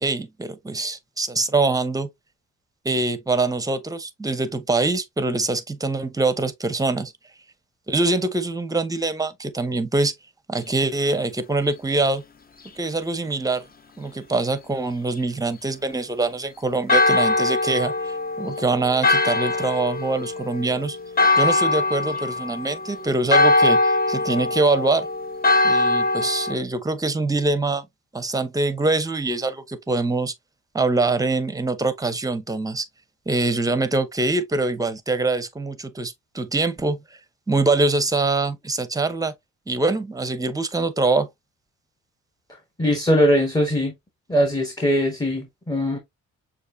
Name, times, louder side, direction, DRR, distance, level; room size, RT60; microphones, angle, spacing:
voice 1, 0.0-2.1 2.8-7.1 7.9-10.1 10.5-12.2 12.8-13.6 14.0-21.0 21.4-25.1 25.6-27.9 28.1-30.3 30.7-32.9 33.3-37.0 37.5-39.3 39.7-41.3, right 3 dB, 10° right, 0.7 m, -24 dB
Church bell, 16.9-26.5, left 2 dB, 30° left, 0.8 m, -22 dB
voice 2, 42.8-43.9 44.3-46.0, equal, 10° left, 1.1 m, -21 dB
6.4 x 2.6 x 2.6 m
cardioid pair, 90°, 30 cm